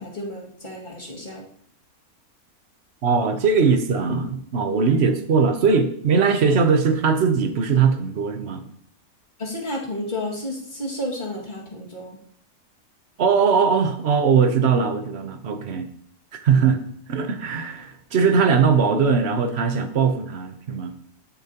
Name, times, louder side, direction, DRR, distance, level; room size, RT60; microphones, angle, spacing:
voice 1, 0.0-1.4 9.4-12.2 16.5-16.7, left 1 dB, 30° left, -4 dB, 2.3 m, -32 dB
voice 2, 3.0-8.6 13.2-15.9 16.3-16.8 17.1-20.9, right 5 dB, 50° right, 8 dB, 1.1 m, -20 dB
13.0 x 7.1 x 2.9 m, 0.64 s
omnidirectional pair, 1.6 m